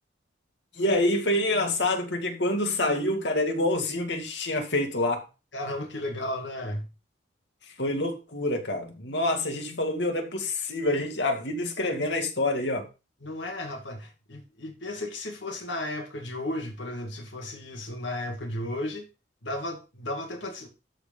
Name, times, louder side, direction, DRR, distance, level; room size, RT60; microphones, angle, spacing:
voice 1, 0.8-5.2 7.8-12.9, left 1 dB, 70° left, 2.2 m, -27 dB
voice 2, 5.5-6.9 13.2-19.1 19.4-20.7, left 1 dB, 85° left, 2.3 m, -34 dB
13.0 x 4.6 x 5.5 m
head